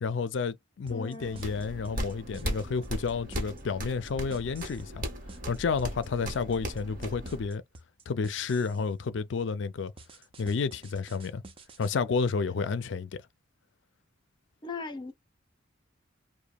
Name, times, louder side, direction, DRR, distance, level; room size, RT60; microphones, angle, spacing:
voice 1, 0.0-5.1 5.5-7.6 8.1-9.9 10.4-11.4 11.8-13.2, left 5 dB, 65° left, 0.4 m, -31 dB
voice 2, 0.9-1.4 14.6-15.1, left 4 dB, 25° left, 0.6 m, -38 dB
sound 1, 0.9-8.9 10.0-11.9, right 3 dB, 30° right, 0.5 m, -50 dB
sound 2, 1.2-7.5, equal, 45° right, 1.0 m, -37 dB
2.8 x 2.1 x 2.3 m
head